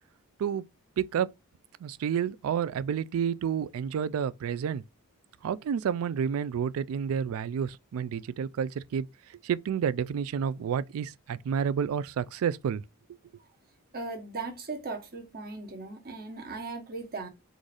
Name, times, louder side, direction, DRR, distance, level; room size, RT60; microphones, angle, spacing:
voice 1, 1.0-1.3 1.8-4.8 5.4-12.8, right 7 dB, 65° right, 0.3 m, -30 dB
voice 2, 13.9-17.3, right 3 dB, 45° right, 1.0 m, -38 dB
3.9 x 2.5 x 4.7 m
head